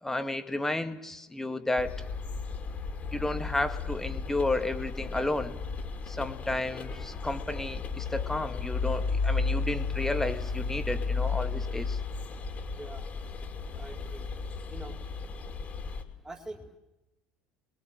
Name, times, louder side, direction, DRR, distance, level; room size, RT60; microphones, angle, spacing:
voice 1, 0.0-2.0 3.1-5.6 6.1-12.0, left 2 dB, 10° left, 8 dB, 2.0 m, -32 dB
sound 1, 1.8-16.0, left 4 dB, 35° left, 3.0 m, -34 dB
voice 2, 12.7-13.1 13.7-14.3 14.7-15.0 16.2-16.8, right 2 dB, 15° right, 2 dB, 4.4 m, -44 dB
28.0 x 22.0 x 7.8 m, 0.94 s
figure-of-eight pair, 65°, 4 cm